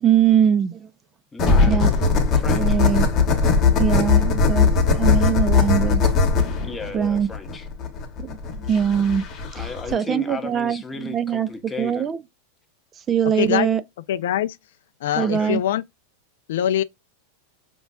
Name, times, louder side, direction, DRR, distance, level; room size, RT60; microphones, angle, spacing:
voice 1, 0.0-0.9 1.7-2.2 2.6-3.1 3.8-6.1 6.9-7.3 8.2-9.2 9.6-12.2 13.1-13.8 15.2-15.6, right 8 dB, 20° right, 0.3 m, -22 dB
voice 2, 1.3-1.9 2.3-2.8 6.6-7.7 9.5-12.1 15.2-15.6, left 3 dB, 10° left, 0.6 m, -35 dB
sound 1, 1.4-9.9, left 4 dB, 30° left, 1.0 m, -19 dB
voice 3, 13.2-13.7 14.1-14.6 15.0-15.8 16.5-16.8, left 11 dB, 75° left, 0.3 m, -23 dB
5.1 x 2.2 x 2.2 m
supercardioid pair, 150°, 0 cm